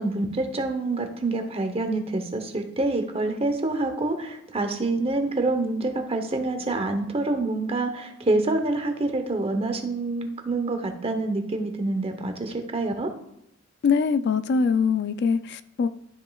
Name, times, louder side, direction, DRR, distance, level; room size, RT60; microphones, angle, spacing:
voice 1, 0.0-13.1, right 2 dB, 25° right, 6 dB, 0.8 m, -27 dB
voice 2, 13.8-15.9, left 5 dB, 50° left, 11 dB, 0.3 m, -23 dB
13.0 x 5.3 x 2.3 m, 0.78 s
head